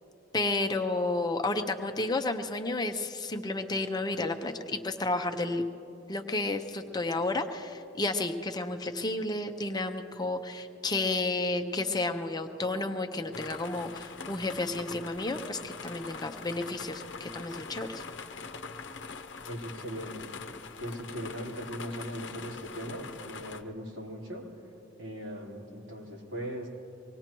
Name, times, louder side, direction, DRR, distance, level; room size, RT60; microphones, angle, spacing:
voice 1, 0.3-5.6 6.1-18.0, left 2 dB, 20° left, 6 dB, 0.7 m, -31 dB
sound 1, 13.3-23.6, left 4 dB, 75° left, 0.8 m, -43 dB
voice 2, 19.5-20.3 20.8-24.5 25.0-26.7, equal, 85° right, -5 dB, 3.8 m, -39 dB
24.5 x 19.0 x 3.0 m, 2.8 s
head